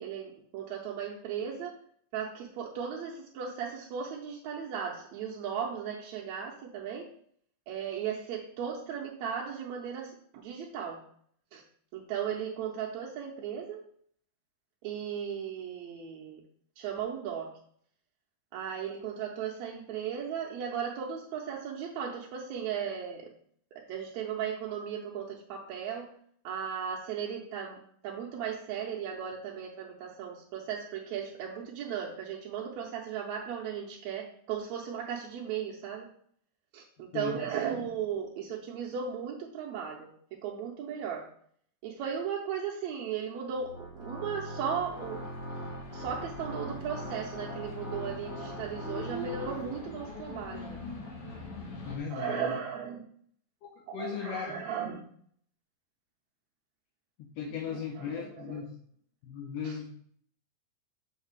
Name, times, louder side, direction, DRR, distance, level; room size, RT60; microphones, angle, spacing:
voice 1, 0.0-1.8 2.1-7.1 7.7-11.0 11.5-11.6 11.9-13.8 14.8-16.4 16.8-17.6 18.5-23.3 23.9-26.1 26.4-36.1 36.7-41.3 41.8-45.2 45.9-50.8 52.1-53.1 53.9-55.1 57.7-58.6 59.6-59.8, right 7 dB, 75° right, -2 dB, 1.8 m, -36 dB
Organ, 43.5-50.1, equal, 25° left, 1.5 m, -41 dB
sound 1, 44.8-52.0, left 2 dB, 55° left, 1.5 m, -43 dB
voice 2, 51.8-52.5 53.6-54.6 57.2-58.8 59.2-60.0, left 6 dB, 70° left, 0 dB, 1.6 m, -37 dB
7.3 x 5.5 x 3.2 m, 0.62 s
omnidirectional pair, 3.7 m